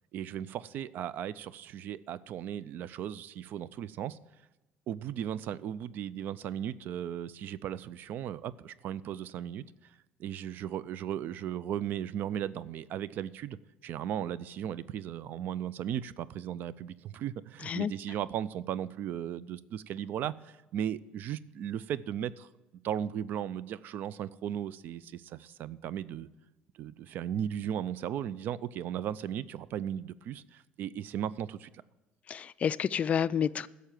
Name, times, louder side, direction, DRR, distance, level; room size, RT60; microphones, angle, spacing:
voice 1, 0.1-4.2 4.9-9.6 10.2-13.6 13.8-22.5 22.8-26.3 26.8-31.7, right 10 dB, 55° right, 0.5 m, -36 dB
voice 2, 17.6-17.9 32.3-33.7, left 8 dB, 35° left, 0.3 m, -29 dB
11.5 x 6.7 x 9.0 m
cardioid pair, 110°, 4 cm